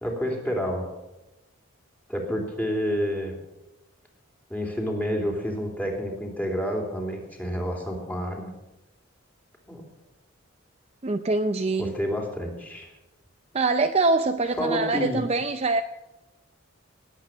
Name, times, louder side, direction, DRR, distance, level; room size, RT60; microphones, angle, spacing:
voice 1, 0.0-0.9 2.1-3.4 4.5-8.5 9.7-9.8 11.8-12.9 14.6-15.2, equal, 10° left, 0 dB, 3.0 m, -29 dB
voice 2, 11.0-11.9 13.5-15.8, right 3 dB, 30° right, 7 dB, 0.5 m, -24 dB
19.5 x 8.3 x 7.2 m, 1.0 s
head